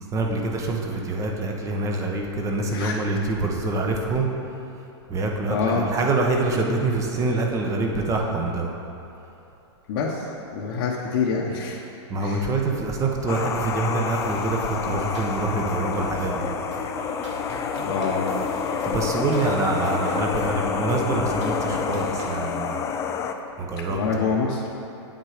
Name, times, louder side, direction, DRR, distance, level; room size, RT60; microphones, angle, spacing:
voice 1, 0.1-4.3 5.1-8.7 12.1-16.5 18.8-22.8 23.6-24.2, right 2 dB, 20° right, 1 dB, 1.1 m, -25 dB
voice 2, 5.5-5.9 9.9-10.2 10.5-11.8 12.2-12.5 17.8-18.3 23.8-24.7, left 5 dB, 50° left, -3 dB, 1.0 m, -26 dB
sound 1, 13.3-23.3, left 6 dB, 20° left, 0.4 m, -28 dB
sound 2, 14.1-22.5, right 2 dB, 80° right, 2.0 m, -40 dB
8.7 x 7.5 x 5.0 m, 2.8 s
hypercardioid pair, 140°, 15 cm